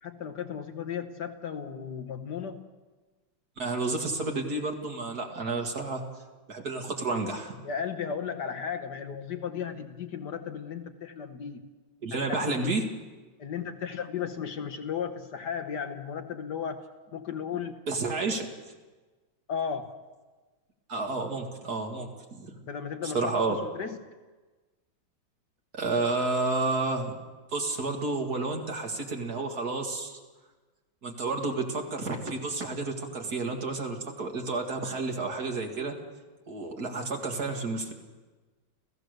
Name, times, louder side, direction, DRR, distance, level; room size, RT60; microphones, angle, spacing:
voice 1, 0.0-2.7 7.6-11.7 12.3-12.4 13.4-16.8 17.1-17.8 19.5-20.0 22.6-24.0, left 7 dB, 60° left, 8 dB, 1.5 m, -35 dB
voice 2, 3.6-6.0 6.5-7.6 12.0-12.8 17.9-18.5 20.9-22.5 23.1-23.6 25.7-27.2 27.5-30.2 31.0-36.0 36.5-37.9, right 3 dB, 50° right, 3 dB, 2.4 m, -30 dB
30.0 x 15.0 x 6.6 m, 1.3 s
omnidirectional pair, 2.2 m